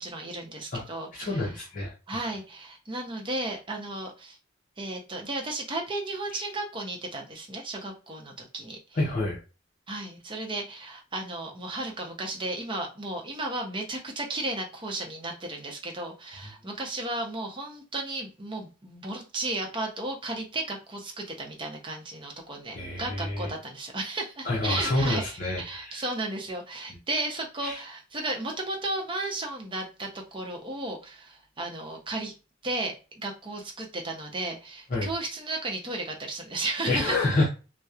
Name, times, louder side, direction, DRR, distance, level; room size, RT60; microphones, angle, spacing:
voice 1, 0.0-1.5 2.1-4.4 4.8-8.8 9.9-32.3 32.6-37.2, right 2 dB, 25° right, 1 dB, 0.6 m, -34 dB
voice 2, 1.1-1.9 6.3-6.4 8.9-9.4 22.7-23.5 24.4-26.0 27.6-27.8 34.9-35.1 36.9-37.5, left 2 dB, 40° left, -4 dB, 0.6 m, -28 dB
2.8 x 2.0 x 2.4 m, 0.33 s
head